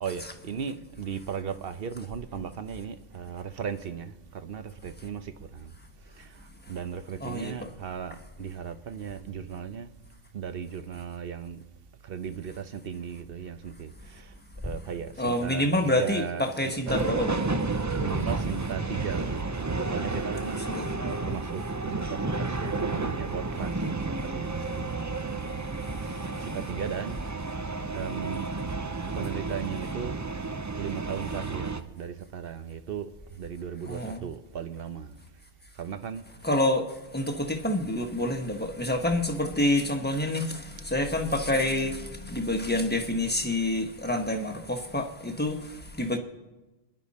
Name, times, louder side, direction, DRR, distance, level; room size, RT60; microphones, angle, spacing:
voice 1, 0.0-5.7 6.1-9.9 10.3-11.6 12.0-14.3 14.6-17.0 18.0-19.5 19.9-20.6 21.0-25.0 26.0-27.5 27.9-28.5 29.1-30.2 30.8-35.2 35.8-36.2, right 7 dB, 55° right, 1.0 m, -37 dB
voice 2, 7.2-7.7 14.6-14.7 15.2-17.5 20.7-21.1 25.4-25.5 25.8-26.5 33.9-34.3 36.4-46.2, left 1 dB, 10° left, 1.2 m, -28 dB
sound 1, 16.9-31.8, right 3 dB, 25° right, 0.4 m, -31 dB
27.0 x 10.5 x 4.2 m
omnidirectional pair, 1.2 m